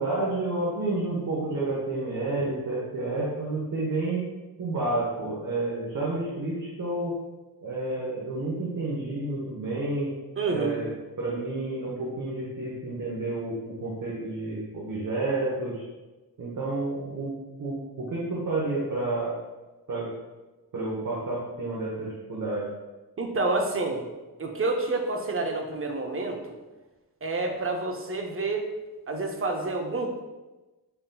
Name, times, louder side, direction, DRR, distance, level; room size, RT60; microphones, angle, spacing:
voice 1, 0.0-4.2 4.6-7.1 7.6-10.1 10.4-10.9 11.2-15.8 16.4-17.3 17.6-19.3 19.9-20.1 20.7-22.7, right 2 dB, 55° right, -5 dB, 0.8 m, -30 dB
voice 2, 10.4-10.8 23.2-24.0 24.4-26.6 27.2-28.7 29.1-30.2, right 3 dB, 35° right, 3 dB, 0.5 m, -28 dB
5.5 x 2.6 x 2.2 m, 1.2 s
wide cardioid pair, 120°, 38 cm